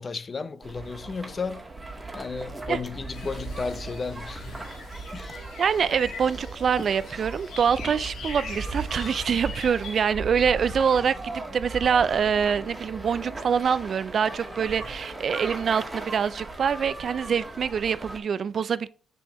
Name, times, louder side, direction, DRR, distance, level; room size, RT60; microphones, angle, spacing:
voice 1, 0.0-1.6 2.1-4.7 5.1-5.4, left 4 dB, 35° left, 0.6 m, -34 dB
sound 1, 0.6-18.2, right 2 dB, 20° right, 1.4 m, -38 dB
sound 2, 3.1-10.0, left 4 dB, 80° left, 2.1 m, -43 dB
voice 2, 5.6-18.9, right 7 dB, 50° right, 0.3 m, -25 dB
6.6 x 6.1 x 3.0 m
cardioid pair, 90°, 0 cm